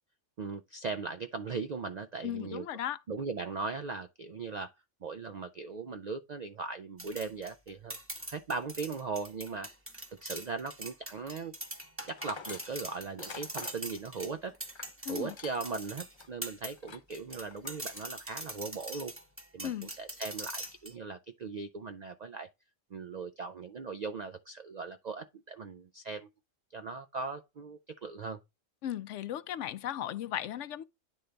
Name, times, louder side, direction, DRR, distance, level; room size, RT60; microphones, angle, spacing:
voice 1, 0.4-2.7 3.1-4.7 5.0-8.0 8.3-9.7 10.2-11.5 12.1-14.6 15.1-19.1 19.5-22.5 22.9-26.3 26.7-28.4, right 4 dB, 65° right, 0.4 m, -39 dB
voice 2, 2.2-3.0 15.0-15.3 19.6-19.9 28.8-30.8, left 11 dB, 70° left, 0.9 m, -36 dB
sound 1, 7.0-16.8 17.1-20.9, right 1 dB, 10° right, 0.8 m, -43 dB
Tools, 12.0-15.8 16.1-16.3 16.8-17.1 17.5-18.1, left 5 dB, 45° left, 0.3 m, -47 dB
10.0 x 3.4 x 3.8 m
omnidirectional pair, 1.3 m